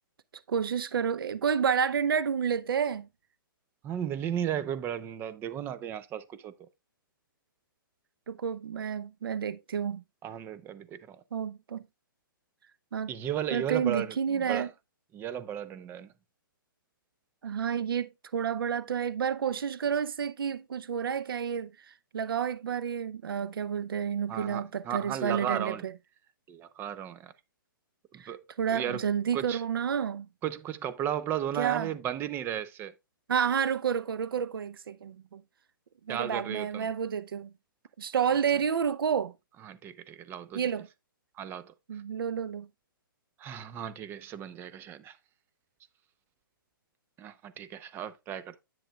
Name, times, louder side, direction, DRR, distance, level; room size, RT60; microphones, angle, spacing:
voice 1, 0.5-3.1 8.3-10.0 11.3-11.8 12.9-13.1 13.5-14.7 17.4-25.9 28.2-28.3 28.6-30.3 31.6-31.9 33.3-35.4 36.1-37.5 38.0-39.3 40.5-40.9 41.9-42.7, right 7 dB, 85° right, 0.7 m, -30 dB
voice 2, 3.8-6.7 10.2-11.2 13.1-14.7 15.1-16.1 24.3-25.8 26.5-27.3 28.1-28.4 28.7-29.1 29.3-29.6 30.4-32.9 36.1-36.9 39.6-40.6 41.4-41.7 43.4-45.2 47.2-48.6, right 10 dB, 20° right, 0.6 m, -35 dB
10.5 x 7.5 x 2.3 m
hypercardioid pair, 145°, 12 cm